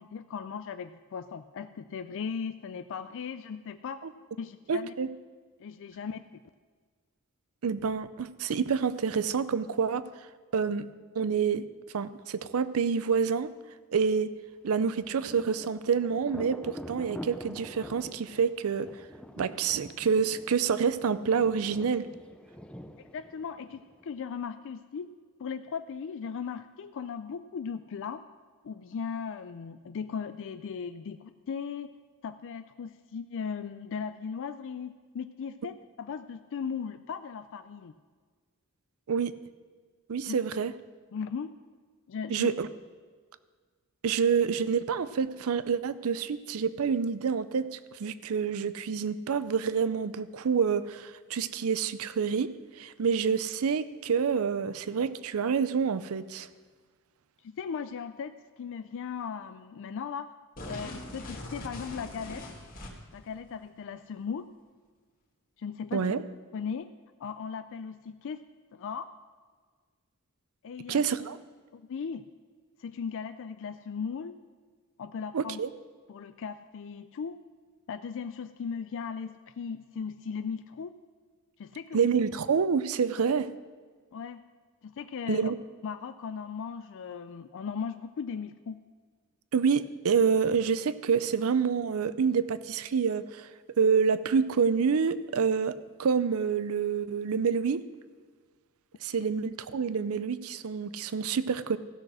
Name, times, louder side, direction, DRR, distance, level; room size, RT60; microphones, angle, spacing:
voice 1, 0.0-4.0 4.4-4.9 5.6-6.4 23.0-25.1 25.4-28.2 28.6-31.9 32.2-37.9 40.3-40.4 41.1-41.5 42.1-42.5 57.4-60.3 60.6-62.4 63.1-64.5 65.6-66.0 66.5-66.9 67.2-68.4 68.7-69.1 70.6-71.0 71.7-72.2 72.8-74.4 75.0-75.6 76.1-77.4 77.9-80.9 81.6-82.0 84.1-84.4 84.8-85.5 85.8-88.8 99.1-99.2, left 6 dB, 60° left, 10 dB, 0.4 m, -37 dB
voice 2, 4.7-5.1 7.6-10.0 10.5-10.9 11.1-11.6 11.9-13.5 13.9-14.3 14.6-18.9 19.4-22.1 39.1-39.3 40.1-40.7 42.3-42.7 44.0-52.5 52.8-56.5 65.9-66.2 70.9-71.4 75.3-75.7 81.9-83.5 85.3-85.6 89.5-93.5 93.8-97.8 99.0-101.8, right 6 dB, 70° right, 15 dB, 0.5 m, -27 dB
Thunder, 14.7-24.2, left 1 dB, 5° left, 0.5 m, -46 dB
sound 1, 60.6-63.2, left 1 dB, 40° left, 1.8 m, -41 dB
15.0 x 6.4 x 6.2 m, 1.5 s
head